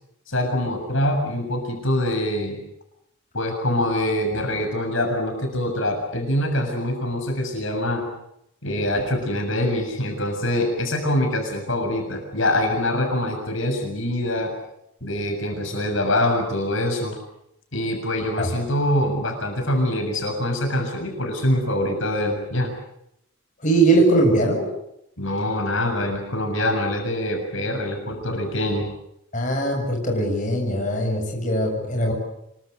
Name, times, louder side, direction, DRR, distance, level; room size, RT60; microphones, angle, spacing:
voice 1, 0.3-2.6 3.3-8.0 8.6-14.5 15.0-17.2 17.7-22.8 25.2-28.9, left 1 dB, 65° left, 4 dB, 7.0 m, -24 dB
voice 2, 23.6-24.7 29.3-32.1, right 2 dB, 35° left, 1 dB, 6.9 m, -20 dB
27.5 x 24.5 x 6.8 m, 0.80 s
head